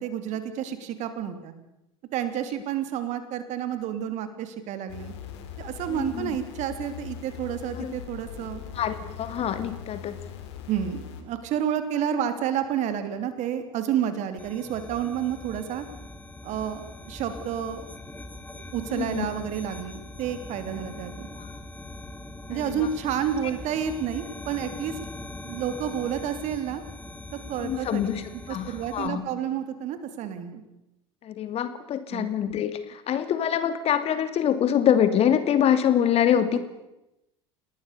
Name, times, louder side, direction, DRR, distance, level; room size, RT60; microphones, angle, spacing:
voice 1, 0.0-1.5 2.1-5.1 5.6-8.6 10.7-15.9 16.4-17.8 18.3-21.3 22.5-25.0 25.4-26.8 27.3-28.1 28.5-30.6 32.1-32.3, right 9 dB, 50° right, 9 dB, 3.2 m, -30 dB
sound 1, 4.9-11.2, left 8 dB, 70° left, 3.7 m, -41 dB
voice 2, 5.9-6.3 7.8-7.9 8.7-10.2 18.9-19.3 21.4-21.5 22.5-22.9 27.6-28.2 28.5-29.2 31.2-36.6, left 9 dB, 40° left, 10 dB, 2.7 m, -25 dB
sound 2, 14.4-29.1, left 2 dB, 10° left, 3.1 m, -41 dB
29.5 x 19.5 x 6.9 m, 0.92 s
hypercardioid pair, 75°, 15 cm